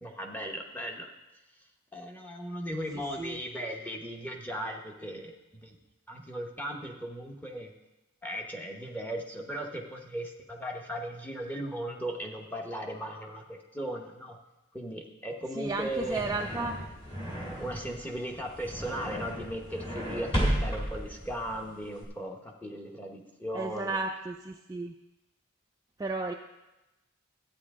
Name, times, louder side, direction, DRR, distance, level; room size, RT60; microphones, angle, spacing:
voice 1, 0.0-1.1 1.9-5.8 6.1-7.7 8.2-14.4 14.7-16.2 17.6-24.0, equal, 10° left, 1 dB, 0.9 m, -37 dB
voice 2, 15.5-16.8 23.5-24.9 26.0-26.3, right 3 dB, 15° right, 3 dB, 0.3 m, -33 dB
sound 1, 15.7-22.0, equal, 25° left, 2.2 m, -34 dB
12.5 x 8.8 x 3.7 m, 1.0 s
head